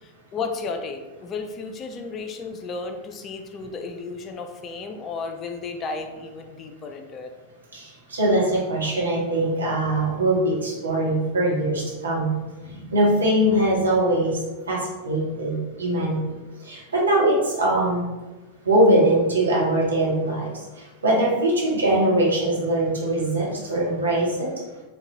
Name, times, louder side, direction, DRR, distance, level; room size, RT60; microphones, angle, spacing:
voice 1, 0.0-7.3, left 4 dB, 30° left, 5 dB, 0.3 m, -33 dB
voice 2, 7.7-12.3 12.6-14.4 14.7-16.2 16.6-18.0 18.6-20.5 21.0-24.5, right 1 dB, 70° right, -4 dB, 1.0 m, -22 dB
3.6 x 2.2 x 2.8 m, 1.2 s
figure-of-eight pair, 90°, 0 cm